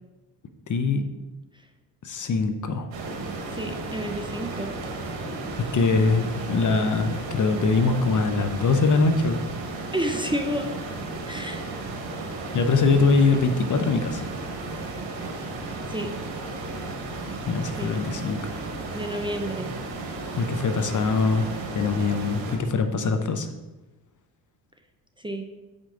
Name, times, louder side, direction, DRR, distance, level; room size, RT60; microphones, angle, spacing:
voice 1, 0.7-1.1 2.0-2.9 5.7-9.4 12.5-14.2 17.5-18.4 20.4-23.5, left 4 dB, 40° left, 8 dB, 0.8 m, -23 dB
sound 1, 2.9-22.6, right 3 dB, 75° right, 1.5 m, -34 dB
voice 2, 3.5-4.7 9.9-10.7 11.3-11.6 15.9-16.1 17.8-17.9 18.9-19.7 25.2-25.4, equal, 10° right, 5 dB, 0.7 m, -30 dB
7.2 x 5.3 x 3.8 m, 1.1 s
supercardioid pair, 65°, 46 cm